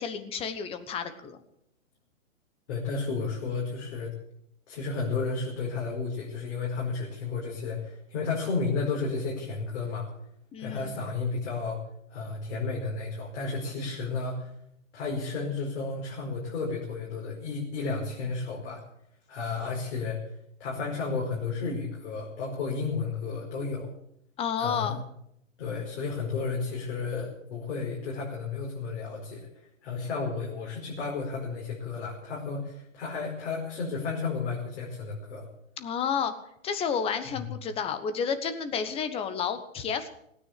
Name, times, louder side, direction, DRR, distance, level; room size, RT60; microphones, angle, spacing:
voice 1, 0.0-1.4 10.5-10.9 24.4-25.0 35.8-36.3 36.6-40.1, left 7 dB, 15° left, 10 dB, 1.2 m, -31 dB
voice 2, 2.7-4.1 4.7-10.1 10.6-11.8 12.1-14.5 14.9-18.8 19.3-20.2 20.6-23.9 24.6-25.0 25.6-29.5 29.8-35.5 37.3-37.5, left 4 dB, 55° left, -3 dB, 5.2 m, -32 dB
17.5 x 9.8 x 8.3 m, 0.74 s
hypercardioid pair, 145°, 40 cm